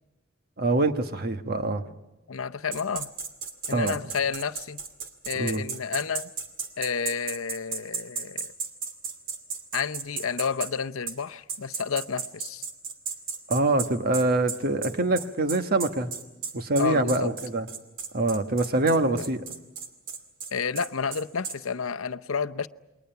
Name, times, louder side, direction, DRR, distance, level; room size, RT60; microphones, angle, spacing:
voice 1, 0.6-1.8 3.7-4.0 5.4-5.6 13.5-16.1 16.5-17.7 18.1-19.4, right 2 dB, 50° right, 8 dB, 1.2 m, -24 dB
voice 2, 2.3-3.1 3.7-4.8 5.3-6.3 6.8-8.5 9.7-12.7 16.8-17.3 19.0-19.3 20.5-22.7, left 6 dB, 75° left, 10 dB, 0.7 m, -30 dB
sound 1, 2.7-10.7 11.1-11.2 11.5-21.6, right 6 dB, 65° right, 2.4 m, -34 dB
28.5 x 22.0 x 5.8 m, 1.0 s
head